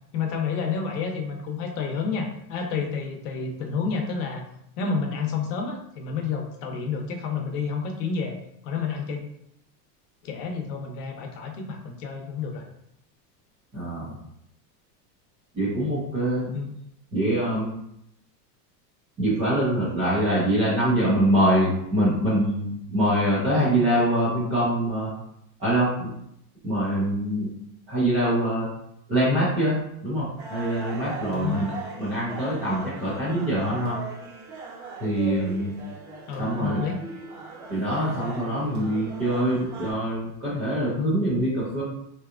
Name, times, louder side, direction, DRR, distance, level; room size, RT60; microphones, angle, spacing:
voice 1, 0.1-4.4 4.8-8.4 8.6-9.2 10.2-12.6 16.5-16.7 31.3-31.7 36.3-37.0, left 5 dB, 70° left, 3 dB, 0.8 m, -30 dB
voice 2, 13.7-14.1 15.5-16.5 17.1-17.7 19.2-25.1 25.6-26.1 26.6-27.5 27.9-28.7 29.1-29.8 30.0-31.7 32.0-34.0 35.0-35.7 36.4-36.8 37.7-41.8, right 1 dB, 15° right, -10 dB, 0.4 m, -24 dB
sound 1, 30.4-39.9, right 3 dB, 40° right, 0.9 m, -39 dB
3.3 x 2.8 x 2.4 m, 0.76 s
supercardioid pair, 170°, 49 cm